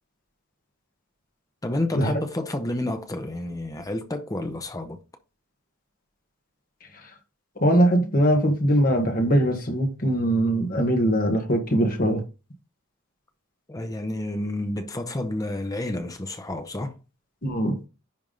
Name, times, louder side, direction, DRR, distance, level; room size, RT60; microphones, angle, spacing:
voice 1, 1.6-5.0 13.7-17.0, left 1 dB, 15° left, 0.7 m, -30 dB
voice 2, 7.6-12.2 17.4-17.9, right 1 dB, 45° left, 1.6 m, -21 dB
10.5 x 3.5 x 3.9 m
head